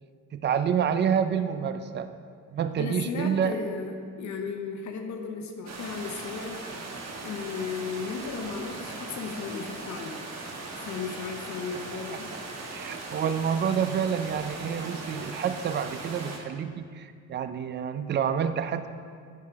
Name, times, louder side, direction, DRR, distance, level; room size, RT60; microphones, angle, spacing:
voice 1, 0.3-2.1 2.5-3.6 12.7-18.9, right 8 dB, 35° right, 10 dB, 0.5 m, -28 dB
voice 2, 2.8-6.6 7.2-10.2 10.8-12.3, left 5 dB, 70° left, 3 dB, 0.9 m, -35 dB
sound 1, 5.7-16.4, right 3 dB, 60° right, 1.4 m, -39 dB
9.5 x 4.8 x 5.0 m, 2.1 s
cardioid pair, 90°, 30 cm